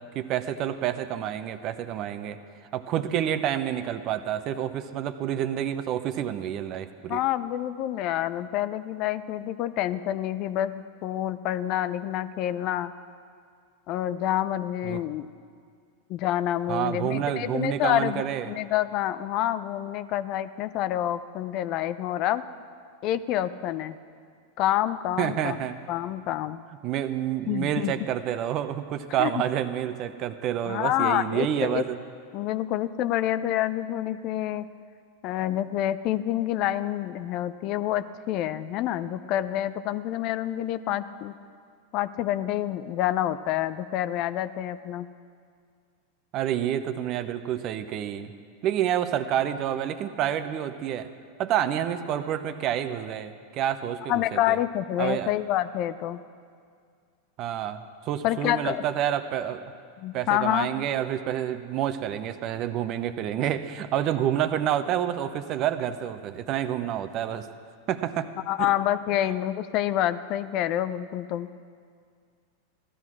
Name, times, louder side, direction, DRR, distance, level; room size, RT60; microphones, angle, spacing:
voice 1, 0.1-2.4 2.7-7.2 14.8-15.0 16.7-18.5 25.2-25.8 26.8-32.0 46.3-48.3 48.6-51.1 51.4-54.6 55.0-55.3 57.4-59.6 60.1-67.5 67.9-68.3, right 10 dB, 45° right, 11 dB, 0.9 m, -28 dB
voice 2, 7.1-12.9 13.9-15.3 16.1-22.4 23.0-24.0 24.6-25.6 25.9-26.6 27.5-27.9 29.2-29.3 30.7-31.8 32.3-34.7 35.2-41.3 41.9-45.1 54.1-56.2 58.2-58.8 60.0-60.7 68.5-71.5, left 12 dB, 45° left, 14 dB, 0.6 m, -27 dB
15.5 x 12.5 x 6.1 m, 2.2 s
figure-of-eight pair, 90°, 0 cm